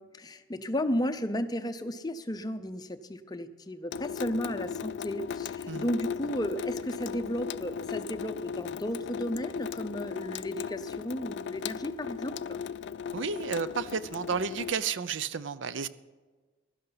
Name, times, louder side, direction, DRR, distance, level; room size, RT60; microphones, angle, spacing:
voice 1, 0.0-12.6, equal, 20° left, 10 dB, 0.6 m, -34 dB
Water tap faucet / Sink (filling or washing) / Drip, 3.9-14.7, left 7 dB, 60° left, 0.3 m, -37 dB
voice 2, 13.1-15.9, right 6 dB, 70° right, 15 dB, 0.5 m, -32 dB
16.0 x 12.5 x 4.0 m, 1.3 s
head